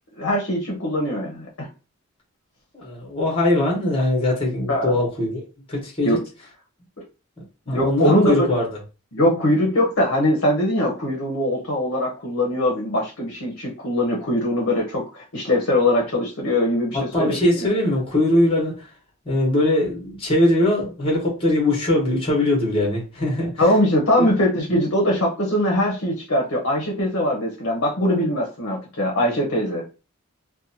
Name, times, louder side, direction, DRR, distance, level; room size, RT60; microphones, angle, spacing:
voice 1, 0.2-1.7 4.7-4.9 6.0-6.2 7.7-8.5 9.1-17.7 23.6-29.9, left 1 dB, 65° left, -1 dB, 0.7 m, -21 dB
voice 2, 2.7-5.4 5.7-6.2 7.7-8.7 16.9-18.9 19.2-23.7 24.2-24.3, left 1 dB, 25° left, -2 dB, 1.1 m, -21 dB
2.7 x 2.2 x 2.7 m, 0.31 s
head